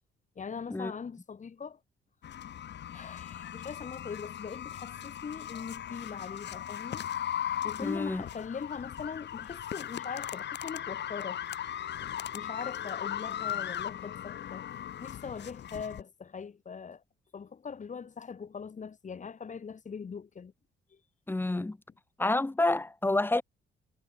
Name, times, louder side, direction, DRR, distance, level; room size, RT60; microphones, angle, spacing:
voice 1, 0.4-1.8 2.9-7.0 7.6-11.4 12.3-14.7 15.0-17.0 17.3-20.5 20.9-21.0, left 6 dB, 40° left, 2.2 m, -41 dB
sound 1, 2.2-16.0, left 10 dB, 60° left, 1.4 m, -38 dB
voice 2, 7.8-8.2 21.3-21.8 22.2-23.4, left 2 dB, 10° left, 0.8 m, -28 dB
cardioid pair, 90°, 20 cm